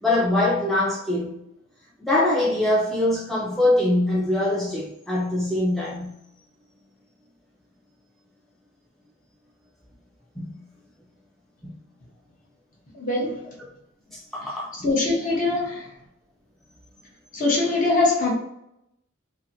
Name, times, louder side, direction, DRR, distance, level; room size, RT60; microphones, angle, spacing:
voice 1, 0.0-1.3 2.0-6.1 10.4-10.6 14.1-14.7, left 1 dB, ahead, 0.4 m, -23 dB
voice 2, 12.9-13.5 14.8-15.9 17.3-18.3, left 2 dB, 40° left, 0.8 m, -22 dB
2.7 x 2.5 x 2.6 m
head